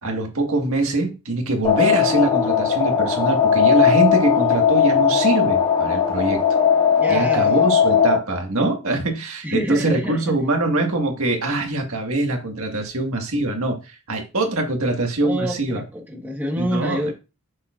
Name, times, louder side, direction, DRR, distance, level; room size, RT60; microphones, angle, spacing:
voice 1, 0.0-6.5 7.1-15.8 16.6-17.1, right 2 dB, 70° right, 1.7 m, -23 dB
sound 1, 1.6-8.2, left 7 dB, 25° left, 1.1 m, -18 dB
voice 2, 6.9-7.6 9.4-10.3 15.2-17.1, equal, 10° right, 1.3 m, -27 dB
7.2 x 6.4 x 2.5 m
head